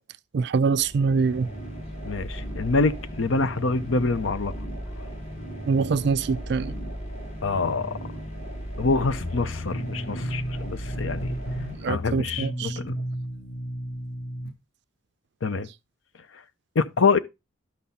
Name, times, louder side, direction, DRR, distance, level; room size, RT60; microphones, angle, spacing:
voice 1, 0.3-1.5 5.7-6.7 11.8-12.8, right 5 dB, 55° right, 0.3 m, -24 dB
sound 1, 0.7-12.5, equal, 35° left, 2.1 m, -36 dB
voice 2, 2.0-4.5 7.4-8.0 8.8-11.4 11.9-13.0 15.4-15.7 16.8-17.2, left 4 dB, 70° left, 0.7 m, -25 dB
sound 2, 9.2-14.5, equal, 50° left, 1.2 m, -33 dB
12.0 x 4.1 x 4.1 m
head